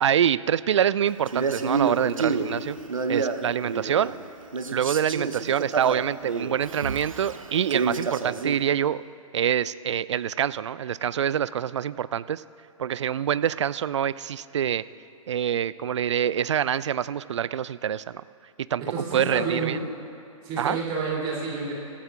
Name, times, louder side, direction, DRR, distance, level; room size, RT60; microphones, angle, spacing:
voice 1, 0.0-2.8 3.1-4.1 4.7-9.0 9.3-12.4 12.8-14.8 15.3-18.2 18.7-18.8 19.1-19.8 20.6-20.8, right 9 dB, 55° right, 17 dB, 0.4 m, -25 dB
Male speech man speaking, 1.3-4.2 4.5-8.6, right 4 dB, 75° right, 1.0 m, -29 dB
voice 2, 18.8-19.8 20.4-21.7, right 4 dB, 25° right, -4 dB, 3.0 m, -29 dB
27.0 x 14.5 x 2.5 m, 2.6 s
figure-of-eight pair, 115°, 18 cm